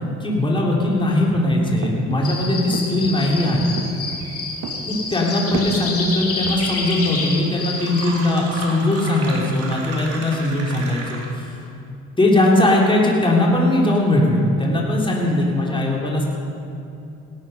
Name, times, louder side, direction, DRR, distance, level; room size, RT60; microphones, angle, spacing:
voice 1, 0.2-3.7 4.8-11.6 12.2-16.3, left 1 dB, 15° left, -2 dB, 3.2 m, -19 dB
sound 1, 1.0-6.6, right 6 dB, 75° right, 1.5 m, -34 dB
sound 2, 2.2-8.1, left 3 dB, 50° left, 3.2 m, -28 dB
Fill (with liquid), 6.4-6.5 6.7-11.5, right 2 dB, 55° right, 3.7 m, -34 dB
17.0 x 13.5 x 5.4 m, 2.7 s
cardioid pair, 90°, 30 cm